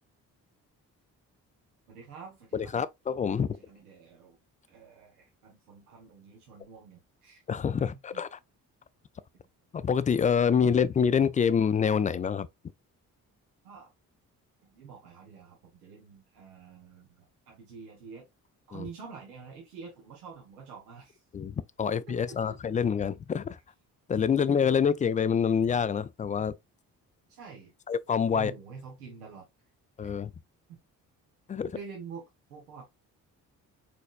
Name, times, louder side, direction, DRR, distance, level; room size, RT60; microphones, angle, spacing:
voice 1, 1.9-2.7 3.7-4.4 4.7-7.4 7.8-8.2 9.3-9.5 13.6-13.9 14.6-18.3 18.7-21.2 21.9-22.6 27.3-27.7 28.3-29.5 30.0-30.1 31.7-32.2 32.5-32.9, right 5 dB, 85° right, 0.9 m, -47 dB
voice 2, 2.5-3.6 7.5-8.4 9.7-12.5 18.7-18.9 21.3-23.6 24.1-26.6 27.9-28.5 30.0-30.3 31.5-31.8, left 7 dB, 20° left, 0.3 m, -26 dB
4.5 x 4.1 x 2.3 m
hypercardioid pair, 40°, 45 cm